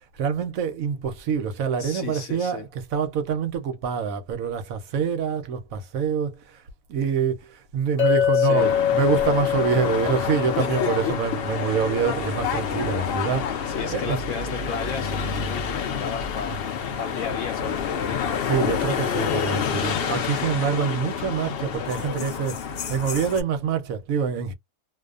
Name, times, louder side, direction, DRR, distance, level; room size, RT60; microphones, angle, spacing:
voice 1, 0.1-6.6 6.9-14.2 16.5-16.6 18.4-24.5, right 6 dB, 70° right, 0.9 m, -26 dB
voice 2, 1.8-2.7 8.3-8.7 10.5-11.8 13.7-16.6 17.0-18.1, left 6 dB, 65° left, 0.9 m, -33 dB
Chink clink, 8.0-12.2, left 9 dB, 30° left, 0.8 m, -25 dB
sound 1, 8.6-23.4, left 7 dB, 85° left, 0.5 m, -28 dB
2.5 x 2.2 x 2.3 m
omnidirectional pair, 1.7 m